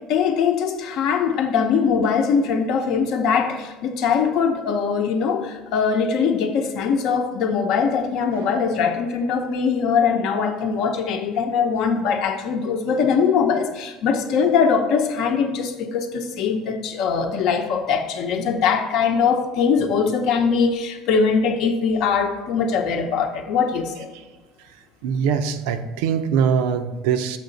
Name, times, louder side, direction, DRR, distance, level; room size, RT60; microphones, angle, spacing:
voice 1, 0.1-24.1, left 6 dB, 55° left, 6 dB, 0.7 m, -21 dB
voice 2, 25.0-27.4, right 7 dB, 90° right, 8 dB, 0.5 m, -22 dB
6.7 x 5.6 x 3.9 m, 1.2 s
cardioid pair, 155°, 0 cm